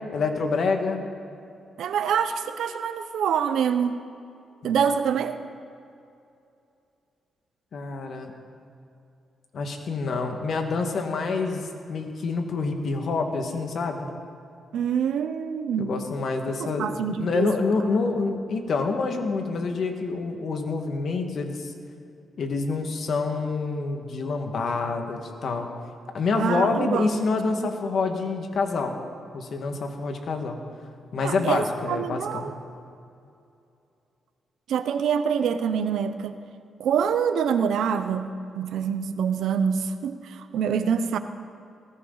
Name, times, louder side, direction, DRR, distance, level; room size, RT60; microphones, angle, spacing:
voice 1, 0.1-1.0 4.6-4.8 7.7-8.3 9.5-11.6 11.9-14.1 15.8-21.7 22.4-25.7 26.1-29.0 29.3-30.6 31.1-32.5, left 4 dB, 65° left, 4 dB, 1.8 m, -27 dB
voice 2, 1.8-4.0 4.6-5.4 14.7-15.9 16.6-17.5 26.3-27.1 31.2-32.5 34.7-36.4 36.8-41.2, right 7 dB, 80° right, 10 dB, 0.8 m, -25 dB
19.5 x 16.0 x 4.1 m, 2.6 s
cardioid pair, 80°, 0 cm